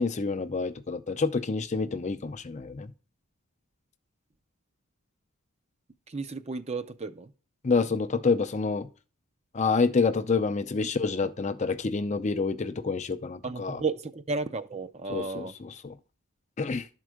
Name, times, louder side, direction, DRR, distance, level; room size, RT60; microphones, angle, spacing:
voice 1, 0.0-2.9 7.6-8.9 9.5-13.8 15.1-15.9 16.6-16.9, left 4 dB, 30° left, 0.5 m, -28 dB
voice 2, 6.1-7.3 10.8-10.9 11.2-11.3 13.4-15.5, right 3 dB, 30° right, 0.5 m, -33 dB
12.0 x 4.6 x 6.3 m
head